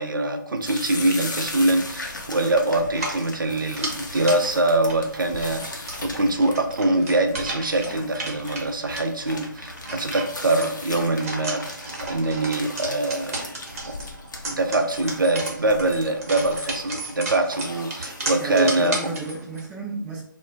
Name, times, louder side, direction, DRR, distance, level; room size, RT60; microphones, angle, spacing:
voice 1, 0.0-13.4 13.9-14.0 14.5-19.0, right 2 dB, 75° right, 5 dB, 0.4 m, -24 dB
sound 1, 0.6-19.3, left 2 dB, 65° left, 0.6 m, -38 dB
sound 2, 2.9-19.7, right 2 dB, 45° right, 0.8 m, -35 dB
voice 2, 18.4-20.2, right 4 dB, 10° right, -3 dB, 0.3 m, -31 dB
2.2 x 2.2 x 3.3 m, 0.67 s
figure-of-eight pair, 135°, 11 cm